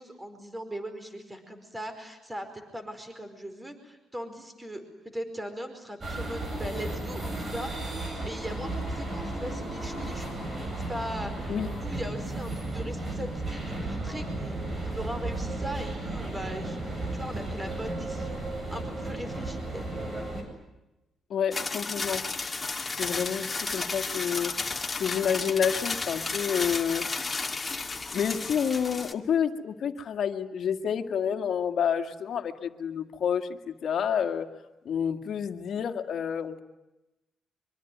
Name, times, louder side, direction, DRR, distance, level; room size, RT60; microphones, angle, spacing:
voice 1, 0.0-10.4 10.9-19.8, equal, 15° right, 8 dB, 4.9 m, -39 dB
sound 1, 6.0-20.4, right 2 dB, 35° right, 8.0 m, -34 dB
voice 2, 21.3-22.2 22.9-24.5 25.0-27.0 28.1-34.5 34.8-36.6, left 8 dB, 60° left, 6 dB, 2.1 m, -29 dB
sound 2, 21.5-29.1, left 3 dB, 25° left, 2.3 m, -33 dB
24.5 x 24.5 x 9.4 m, 0.99 s
cardioid pair, 90°, 0 cm